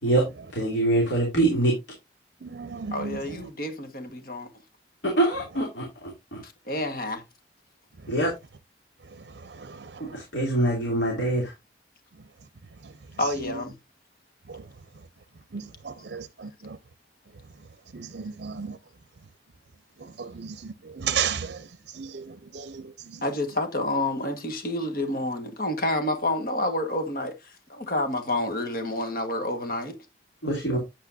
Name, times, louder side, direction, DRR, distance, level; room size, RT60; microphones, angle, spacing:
voice 1, 0.5-1.7 5.0-6.4 8.1-8.3 10.0-11.5 30.4-30.8, right 1 dB, 90° left, 3.0 m, -24 dB
voice 2, 2.4-3.4 8.0-8.1 9.0-10.2 12.8-13.6 14.5-14.7 15.5-16.8 17.9-18.8 20.0-23.3 30.7-30.8, right 7 dB, 65° right, 0.6 m, -35 dB
voice 3, 2.9-4.5 6.4-7.2 13.2-13.8 23.2-29.9, left 1 dB, 55° left, 1.5 m, -29 dB
8.6 x 8.4 x 2.6 m
head